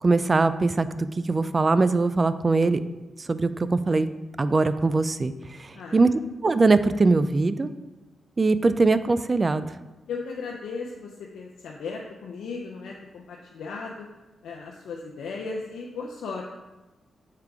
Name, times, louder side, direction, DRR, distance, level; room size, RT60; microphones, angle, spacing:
voice 1, 0.0-2.8 3.2-4.1 4.4-6.1 6.4-7.7 8.4-9.7, right 3 dB, 35° right, 13 dB, 0.3 m, -22 dB
voice 2, 10.1-14.1 14.4-16.4, left 4 dB, 90° left, -1 dB, 0.5 m, -36 dB
6.6 x 4.8 x 3.5 m, 1.1 s
cardioid pair, 65°, 0 cm